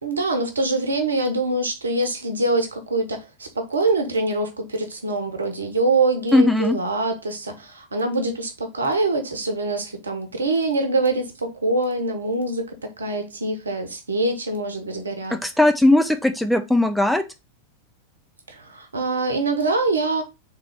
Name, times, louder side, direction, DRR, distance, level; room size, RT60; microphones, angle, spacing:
voice 1, 0.0-15.4 18.5-20.2, right 2 dB, 75° right, 0.9 m, -24 dB
voice 2, 6.3-6.8 15.3-17.2, left 1 dB, ahead, 0.4 m, -18 dB
3.7 x 3.1 x 4.6 m
figure-of-eight pair, 90°, 0 cm